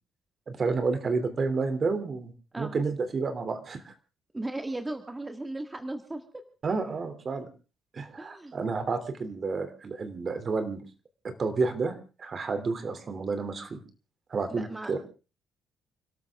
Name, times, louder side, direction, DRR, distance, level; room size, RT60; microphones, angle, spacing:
voice 1, 0.5-3.9 6.6-7.5 7.9-10.8 11.2-13.8 14.3-15.0, right 4 dB, 45° right, 9 dB, 3.1 m, -30 dB
voice 2, 4.3-6.2 8.2-8.5 14.5-15.0, right 2 dB, 15° right, 6 dB, 1.9 m, -36 dB
30.0 x 13.0 x 3.7 m, 0.34 s
cardioid pair, 90°, 0 cm